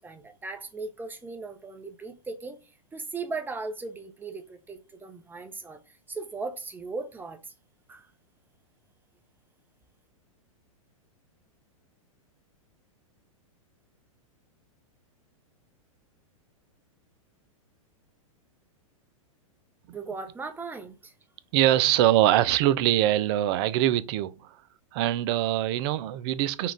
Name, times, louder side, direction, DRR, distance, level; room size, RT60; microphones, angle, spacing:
voice 1, 0.0-7.5 7.9-8.1 19.9-21.1, right 4 dB, 10° right, 0.8 m, -38 dB
voice 2, 21.5-24.6 24.9-26.7, right 13 dB, 50° right, 0.5 m, -23 dB
5.6 x 2.4 x 3.7 m
hypercardioid pair, 110°, 18 cm